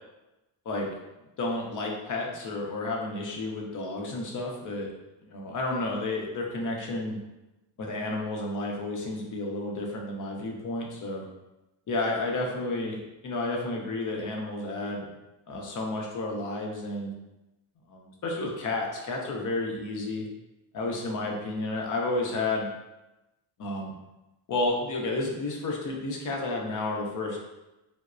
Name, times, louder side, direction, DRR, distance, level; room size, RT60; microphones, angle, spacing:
voice 1, 1.4-4.9 5.2-7.2 7.8-11.3 11.9-15.1 15.5-17.1 17.9-20.3 20.7-22.7 23.6-23.9 24.5-27.4, left 2 dB, 45° left, -1 dB, 0.6 m, -31 dB
3.0 x 2.0 x 2.4 m, 1.0 s
cardioid pair, 100°, 45 cm